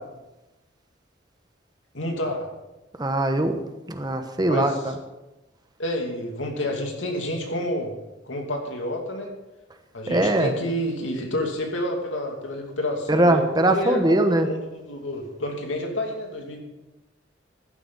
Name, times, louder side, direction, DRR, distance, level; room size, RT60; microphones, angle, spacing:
voice 1, 1.9-2.5 4.5-4.9 5.8-7.9 8.2-9.3 9.9-16.6, left 1 dB, 90° left, 2 dB, 2.6 m, -29 dB
voice 2, 3.0-3.5 3.9-4.9 10.1-10.5 13.1-14.5, right 1 dB, 20° right, 7 dB, 1.0 m, -21 dB
14.5 x 11.5 x 4.1 m, 1.0 s
head